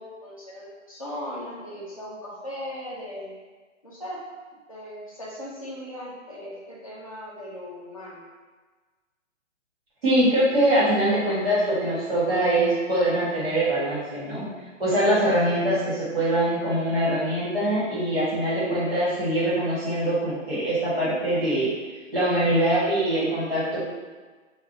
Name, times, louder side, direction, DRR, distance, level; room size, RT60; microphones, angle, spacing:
voice 1, 0.0-3.3 3.8-4.2 4.5-8.2, equal, 30° left, -7 dB, 0.5 m, -38 dB
voice 2, 10.0-14.5 14.8-21.7 22.1-23.8, right 1 dB, 50° right, -9 dB, 1.5 m, -23 dB
3.4 x 2.3 x 2.6 m, 1.4 s
hypercardioid pair, 175°, 39 cm